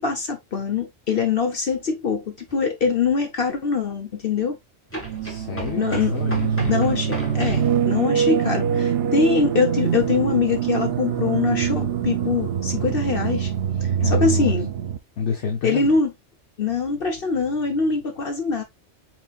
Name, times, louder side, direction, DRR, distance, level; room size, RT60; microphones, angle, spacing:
voice 1, 0.0-4.6 5.8-6.2 6.7-13.5 13.8-14.7 15.6-16.1 16.6-18.6, left 5 dB, 55° left, 1.1 m, -23 dB
sound 1, 2.5-2.6 4.9-7.7, right 1 dB, 10° left, 1.7 m, -35 dB
sound 2, 5.0-15.0, right 8 dB, 60° right, 0.9 m, -24 dB
voice 2, 5.2-6.7 14.0-14.5 15.2-16.0, left 6 dB, 75° left, 1.4 m, -29 dB
5.4 x 3.8 x 2.4 m
omnidirectional pair, 1.2 m